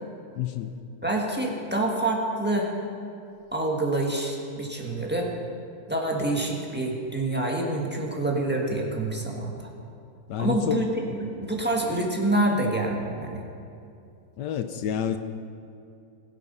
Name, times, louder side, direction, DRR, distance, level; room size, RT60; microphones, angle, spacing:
voice 1, 0.3-0.7 10.3-10.9 14.4-15.2, left 9 dB, 70° left, 9 dB, 1.2 m, -29 dB
voice 2, 1.0-2.7 3.5-5.3 5.9-9.7 10.4-13.4, right 2 dB, 5° right, -1 dB, 1.4 m, -27 dB
21.0 x 7.7 x 5.5 m, 2.6 s
omnidirectional pair, 2.1 m